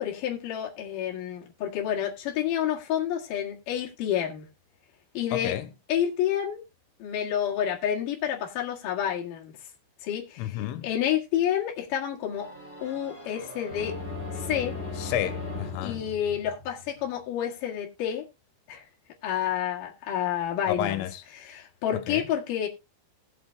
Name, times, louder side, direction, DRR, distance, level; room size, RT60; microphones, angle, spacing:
voice 1, 0.0-4.5 5.1-5.5 5.9-6.6 7.0-9.5 10.0-10.5 10.8-12.5 12.8-13.9 14.3-14.8 15.8-18.3 18.7-18.8 19.2-21.0 21.4-22.7, left 10 dB, 55° left, 2.7 m, -29 dB
voice 2, 5.3-5.7 10.4-10.9 15.0-16.0 20.7-21.2 21.9-22.3, left 11 dB, 90° left, 3.4 m, -31 dB
sound 1, 12.3-17.1, left 3 dB, 15° left, 2.5 m, -37 dB
19.5 x 7.6 x 2.3 m
omnidirectional pair, 5.7 m